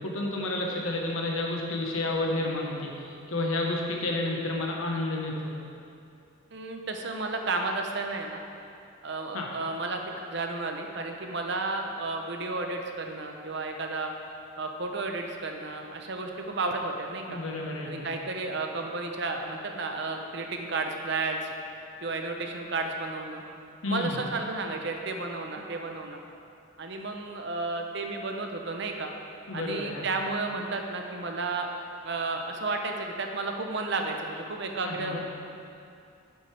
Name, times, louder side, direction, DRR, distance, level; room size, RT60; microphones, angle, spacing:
voice 1, 0.0-5.5 9.3-9.5 17.3-18.1 23.8-24.2 29.5-30.0 34.8-35.2, left 2 dB, 85° left, -1 dB, 1.2 m, -30 dB
voice 2, 6.5-8.4 9.0-10.0 10.3-14.1 14.6-17.4 17.8-21.5 22.0-23.4 23.9-26.2 26.8-29.1 29.5-31.7 32.0-35.2, right 3 dB, 55° right, 3 dB, 0.7 m, -32 dB
9.2 x 8.1 x 3.4 m, 2.5 s
head